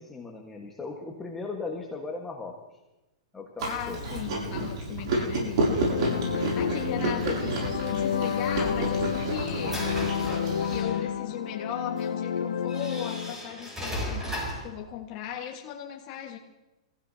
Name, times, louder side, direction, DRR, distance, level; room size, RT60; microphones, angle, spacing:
voice 1, 0.0-2.6 3.3-4.0 6.2-6.9, left 3 dB, 10° left, 0 dB, 1.4 m, -38 dB
Chewing mastication, 3.6-10.8, right 2 dB, 60° right, 7.5 m, -30 dB
voice 2, 3.7-5.9 6.3-9.9 10.6-16.4, left 10 dB, 35° left, 0 dB, 1.5 m, -37 dB
sound 1, 5.4-13.3, left 8 dB, 90° left, 1.1 m, -31 dB
sound 2, 9.0-11.1 12.0-12.1 12.7-14.7, left 1 dB, 10° right, 7.4 m, -36 dB
29.0 x 15.5 x 2.8 m, 0.99 s
hypercardioid pair, 150°, 3 cm